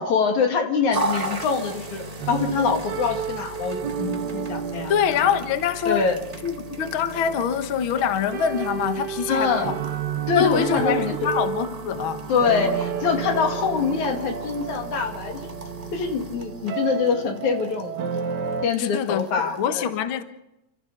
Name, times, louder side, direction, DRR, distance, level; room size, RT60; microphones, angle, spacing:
voice 1, 0.0-4.9 5.9-6.2 9.3-9.7 10.3-11.3 12.3-15.4 15.9-18.0 18.6-19.9, left 5 dB, 80° left, 3.8 m, -24 dB
sound 1, 0.9-19.7, right 1 dB, 20° right, 1.2 m, -38 dB
sound 2, 2.2-18.7, right 8 dB, 70° right, 1.0 m, -32 dB
voice 2, 4.9-6.1 6.4-9.8 10.3-12.3 18.8-20.2, left 8 dB, 55° left, 1.8 m, -25 dB
29.0 x 15.0 x 6.8 m
omnidirectional pair, 3.3 m